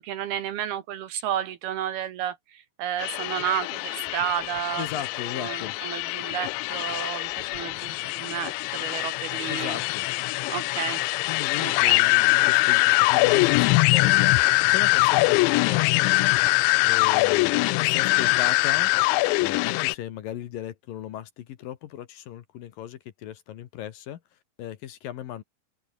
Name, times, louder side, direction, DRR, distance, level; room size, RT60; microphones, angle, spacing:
voice 1, 0.0-4.9 5.3-9.8 10.5-11.0 11.6-12.0, right 10 dB, 70° right, 2.9 m, -32 dB
sound 1, 3.0-19.9, left 22 dB, 90° left, 2.9 m, -23 dB
voice 2, 4.8-5.8 9.5-10.3 11.3-14.4 14.7-16.2 16.8-18.9 19.4-24.2 24.6-25.4, left 11 dB, 65° left, 2.6 m, -36 dB
omnidirectional pair, 5.1 m